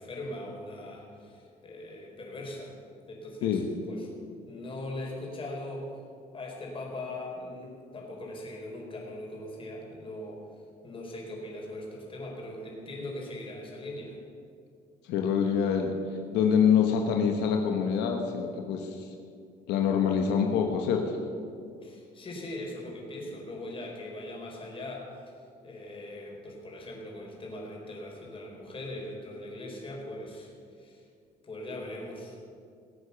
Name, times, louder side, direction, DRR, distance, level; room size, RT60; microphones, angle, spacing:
voice 1, 0.0-2.7 3.1-4.2 4.5-5.9 6.3-10.4 10.8-14.2 21.8-25.4 25.6-31.1 31.4-32.4, left 1 dB, 30° left, -1 dB, 4.6 m, -40 dB
voice 2, 15.0-15.9 16.3-19.1 19.7-21.2, left 7 dB, 90° left, 3 dB, 1.3 m, -25 dB
20.0 x 8.3 x 7.0 m, 2.4 s
cardioid pair, 110°, 17 cm